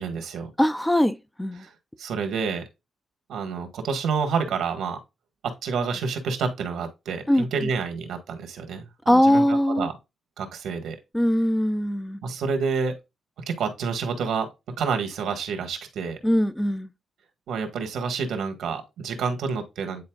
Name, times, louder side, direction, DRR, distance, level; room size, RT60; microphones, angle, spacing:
voice 1, 0.0-0.5 1.6-1.7 2.0-2.6 3.3-5.0 5.4-9.9 10.4-11.0 12.2-13.0 13.5-16.2 17.5-20.0, right 5 dB, 85° right, 1.6 m, -29 dB
voice 2, 0.6-1.7 7.3-7.4 9.1-9.9 11.1-12.2 16.2-16.9, equal, 5° left, 0.5 m, -21 dB
9.5 x 4.3 x 2.3 m
cardioid pair, 120°, 0 cm